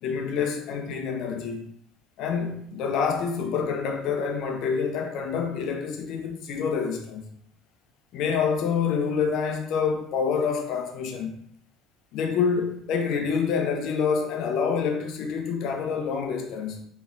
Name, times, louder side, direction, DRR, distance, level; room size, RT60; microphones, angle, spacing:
voice 1, 0.0-1.7 2.2-7.3 8.1-11.3 12.1-16.8, left 6 dB, 60° left, 0.8 m, -27 dB
3.9 x 3.4 x 2.8 m
hypercardioid pair, 70°, 0 cm